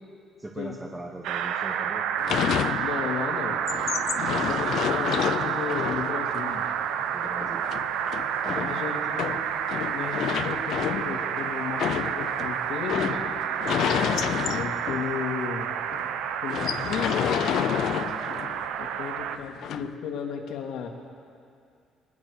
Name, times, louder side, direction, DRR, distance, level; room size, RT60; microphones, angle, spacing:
voice 1, 0.4-2.1 4.5-4.9 7.0-7.7 8.4-8.9, right 2 dB, 10° right, 2 dB, 1.0 m, -39 dB
sound 1, 1.2-19.4, right 8 dB, 80° right, 1.0 m, -29 dB
sound 2, 2.2-3.2 3.5-15.2 15.6-15.7 15.9-16.1 16.5-18.7 19.6-19.9, left 10 dB, 55° left, 0.5 m, -30 dB
voice 2, 2.8-3.6 4.3-6.7 8.5-9.3 9.9-13.2 14.4-15.7 16.4-17.3 18.8-20.9, left 7 dB, 70° left, 3 dB, 2.3 m, -34 dB
21.5 x 19.5 x 6.4 m, 2.4 s
cardioid pair, 165°, 0 cm